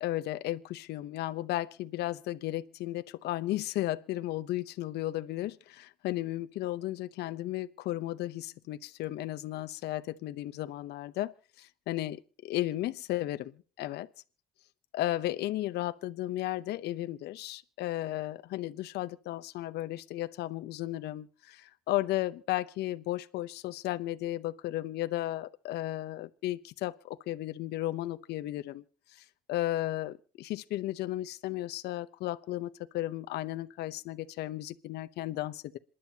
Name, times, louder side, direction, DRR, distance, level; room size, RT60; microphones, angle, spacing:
voice 1, 0.0-14.1 14.9-28.8 29.1-35.8, left 15 dB, 75° left, 0.7 m, -34 dB
27.0 x 11.0 x 2.8 m
cardioid pair, 110°, 17 cm